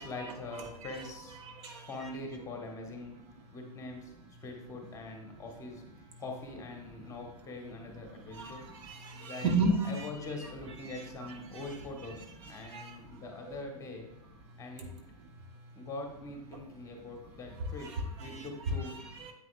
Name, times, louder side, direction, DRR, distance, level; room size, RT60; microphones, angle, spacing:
voice 1, 0.0-1.4 1.9-3.2 3.5-4.1 4.4-5.8 6.2-8.6 9.3-9.6 9.8-12.2 12.5-14.1 14.6-14.9 15.7-17.9 18.2-18.9, left 2 dB, 15° left, 2 dB, 1.4 m, -43 dB
voice 2, 1.4-2.1 8.1-10.1 10.8-10.9 11.2-11.7 12.6-13.3 17.8-18.5 18.8-19.3, right 2 dB, 45° right, 2 dB, 1.3 m, -35 dB
9.3 x 8.3 x 2.5 m, 0.86 s
figure-of-eight pair, 105°, 20 cm